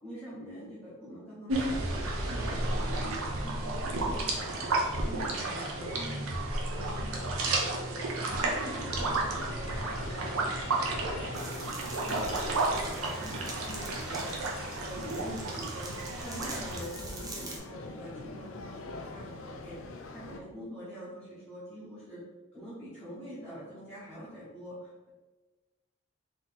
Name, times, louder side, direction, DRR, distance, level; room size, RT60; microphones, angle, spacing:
voice 1, 0.0-4.6 5.0-6.3 6.7-8.0 8.4-11.7 12.0-15.9 16.2-19.8 20.1-22.2 22.5-25.1, equal, 5° left, -12 dB, 1.1 m, -45 dB
sound 1, 1.5-16.8, right 2 dB, 90° right, 0.8 m, -32 dB
sound 2, 8.1-20.4, left 3 dB, 70° left, 0.5 m, -44 dB
sound 3, 11.3-17.6, right 2 dB, 15° right, 0.5 m, -45 dB
3.9 x 3.0 x 4.1 m, 1.2 s
head